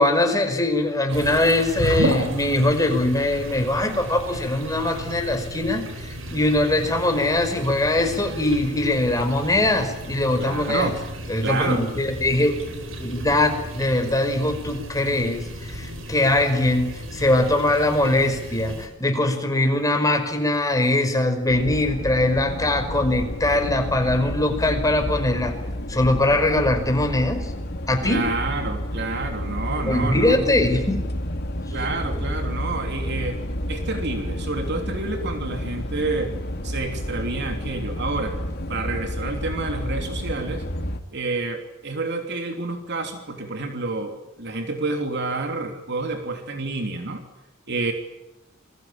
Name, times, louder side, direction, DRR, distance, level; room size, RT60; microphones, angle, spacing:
voice 1, 0.0-10.9 11.3-25.5 25.9-27.5 27.9-28.2 29.9-31.1, left 1 dB, 15° left, 5 dB, 5.3 m, -22 dB
sound 1, 1.1-18.9, right 1 dB, 75° right, 5.3 m, -33 dB
voice 2, 10.4-11.0 11.4-11.9 28.0-30.4 31.7-33.4 33.7-36.3 36.6-38.4 38.7-40.7 41.1-47.3 47.7-47.9, right 3 dB, 55° right, 4 dB, 3.3 m, -28 dB
sound 2, 21.5-41.0, equal, 55° left, 2.7 m, -30 dB
28.0 x 23.0 x 8.9 m, 0.91 s
head